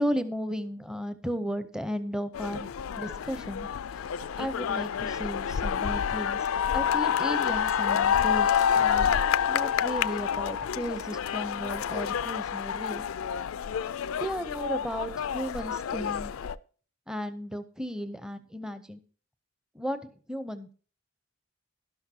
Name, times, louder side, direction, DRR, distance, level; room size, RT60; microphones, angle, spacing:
voice 1, 0.0-2.7 3.0-3.7 4.4-6.4 6.7-9.2 9.5-13.1 14.2-16.3 17.1-19.0 19.7-20.7, equal, 5° right, 10 dB, 0.6 m, -34 dB
sound 1, 2.3-16.6, left 8 dB, 80° left, 0.4 m, -28 dB
12.0 x 12.0 x 2.8 m, 0.41 s
head